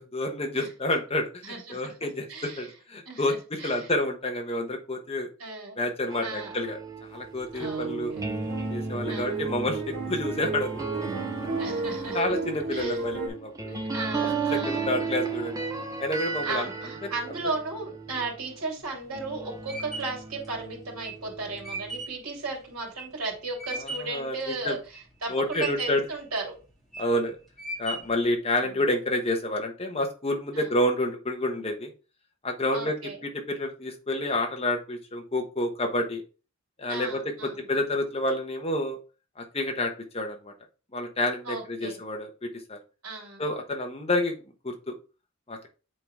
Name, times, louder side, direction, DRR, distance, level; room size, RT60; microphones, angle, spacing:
voice 1, 0.0-5.3 5.8-8.1 8.7-10.8 12.1-13.8 14.5-15.6 16.0-16.7 17.0-17.1 23.8-24.8 25.3-26.0 27.0-27.4 27.8-31.9 32.4-32.9 33.2-36.2 36.8-39.0 39.4-40.5 40.9-42.8 43.4-44.3 44.6-44.9 45.5-45.7, left 1 dB, 25° left, 3 dB, 1.1 m, -29 dB
voice 2, 1.4-1.9 2.3-2.7 3.1-3.9 5.4-5.8 6.2-6.5 7.5-8.2 9.1-9.6 11.6-12.4 12.7-13.0 13.7-15.0 16.4-26.5 28.5-28.7 30.5-30.7 32.7-33.2 36.9-37.6 41.4-42.0 43.0-43.4, right 3 dB, 85° right, -1 dB, 2.9 m, -35 dB
sound 1, 6.1-18.6 19.1-22.0, right 4 dB, 15° right, 0.8 m, -35 dB
sound 2, 7.5-13.3, right 4 dB, 60° right, 1.8 m, -33 dB
sound 3, 18.8-24.2 24.7-25.2 25.5-26.2 26.7-27.2 27.6-28.3, right 2 dB, ahead, 1.9 m, -37 dB
7.6 x 4.0 x 3.5 m, 0.34 s
head